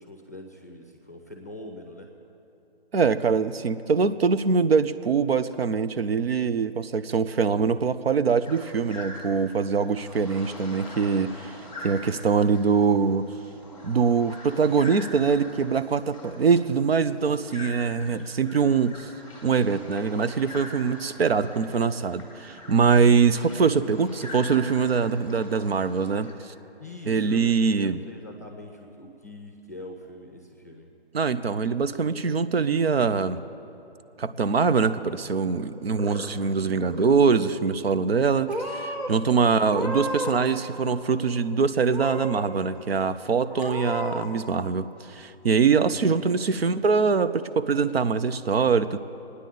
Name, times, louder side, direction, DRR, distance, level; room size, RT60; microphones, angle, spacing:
voice 1, 0.0-2.1 26.8-30.9 45.9-46.1, left 1 dB, 15° left, 3 dB, 0.6 m, -43 dB
voice 2, 2.9-11.5 11.8-13.3 13.8-19.1 19.4-26.3 27.1-28.0 31.1-33.4 34.2-49.0, right 5 dB, 70° right, 12 dB, 0.6 m, -23 dB
sound 1, 8.4-26.3, left 1 dB, 5° right, 1.4 m, -44 dB
Purr / Meow, 35.7-36.5 36.8-37.4 38.1-38.2 38.5-39.1 39.6-40.5 40.8-41.5 41.9-42.5 42.9-43.0 43.5-44.2, equal, 90° right, 3.6 m, -33 dB
26.5 x 9.7 x 3.9 m, 2.9 s
hypercardioid pair, 175°, 31 cm